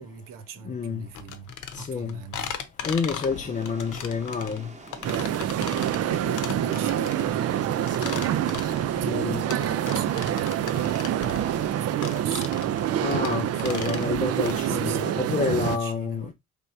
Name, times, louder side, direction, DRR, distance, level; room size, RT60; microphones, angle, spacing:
voice 1, 0.0-2.6 5.1-5.5 6.0-12.6 14.6-16.3, right 7 dB, 80° right, 0.9 m, -40 dB
voice 2, 0.6-1.1 1.7-2.2 2.8-4.7 9.0-9.4 13.0-16.3, left 5 dB, 25° left, 0.4 m, -29 dB
sound 1, 1.1-14.6, left 7 dB, 65° left, 0.8 m, -37 dB
sound 2, 3.2-11.9, right 3 dB, 20° right, 0.9 m, -44 dB
sound 3, 5.0-15.8, right 11 dB, 50° right, 0.4 m, -26 dB
4.4 x 3.4 x 2.6 m
cardioid pair, 135°, 32 cm